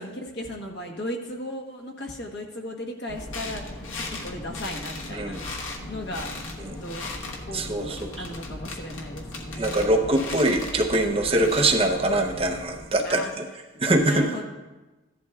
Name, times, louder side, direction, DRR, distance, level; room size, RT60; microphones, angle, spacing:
voice 1, 0.0-5.4 5.9-6.3 6.8-7.1 7.5-9.9 13.0-13.3 13.7-14.4, left 1 dB, 55° left, 1 dB, 1.3 m, -36 dB
sound 1, 3.1-13.3, left 2 dB, 75° left, 1.3 m, -37 dB
voice 2, 5.1-5.4 6.7-6.8 7.5-8.3 9.6-13.2 13.8-14.3, right 1 dB, 30° right, 2 dB, 0.7 m, -23 dB
14.5 x 11.5 x 2.4 m, 1.1 s
head